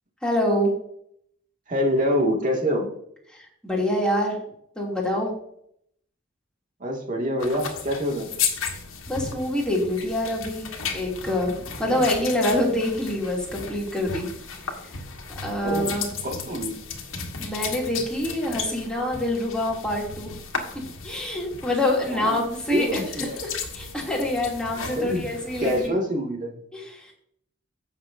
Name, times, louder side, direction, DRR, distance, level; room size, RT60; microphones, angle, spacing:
voice 1, 0.2-0.7 3.3-4.4 4.7-5.3 9.1-10.7 10.9-11.5 11.8-14.3 14.8-14.9 15.3-16.1 17.4-20.4 21.0-25.9 26.7-27.1, left 1 dB, 5° left, -3 dB, 2.9 m, -26 dB
voice 2, 1.7-2.9 6.8-8.3 11.8-11.9 15.6-15.9 16.2-16.7 22.1-22.4 22.7-23.4 25.0-25.2 25.6-26.5, equal, 40° right, 0 dB, 2.3 m, -25 dB
sound 1, 7.4-25.9, left 6 dB, 90° left, 1.6 m, -35 dB
15.5 x 6.7 x 2.7 m, 0.70 s
head